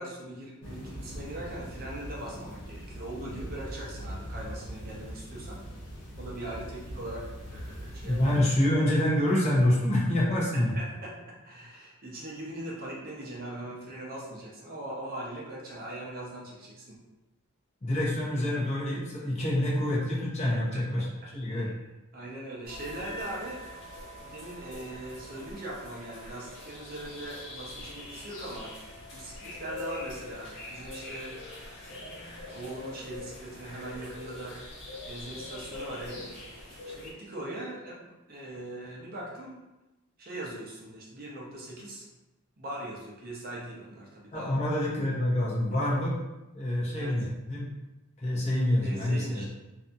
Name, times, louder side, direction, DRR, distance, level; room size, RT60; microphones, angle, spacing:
voice 1, 0.0-5.6 6.2-8.2 10.6-17.0 20.5-20.6 21.4-21.7 22.1-23.6 24.2-28.7 29.1-31.4 31.8-34.6 35.0-36.3 36.8-39.6 40.2-42.1 42.6-44.5 46.9-47.2 48.8-49.5, right 1 dB, 45° right, -4 dB, 0.6 m, -40 dB
sound 1, 0.6-8.4, equal, 75° left, 0.8 m, -41 dB
voice 2, 8.0-10.7 17.8-21.1 21.3-21.7 44.3-46.2 46.5-47.7 48.2-49.5, left 1 dB, 30° left, -6 dB, 0.7 m, -26 dB
sound 2, 22.6-37.1, left 2 dB, 60° left, 1.2 m, -43 dB
2.7 x 2.5 x 2.3 m, 1.0 s
head